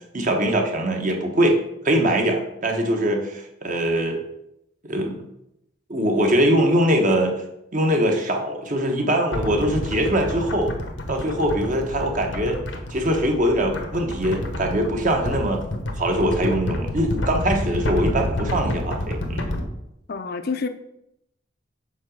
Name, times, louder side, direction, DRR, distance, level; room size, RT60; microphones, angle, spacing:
voice 1, 0.1-1.6 1.8-4.2 4.8-5.2 5.9-7.3 7.7-10.7 11.1-12.6 12.9-15.6 16.0-19.5, right 1 dB, 45° right, 3 dB, 1.2 m, -22 dB
sound 1, 9.3-19.6, left 1 dB, 90° left, 1.2 m, -29 dB
voice 2, 20.1-20.7, left 4 dB, 55° left, 9 dB, 0.6 m, -27 dB
5.4 x 4.9 x 6.4 m, 0.82 s
head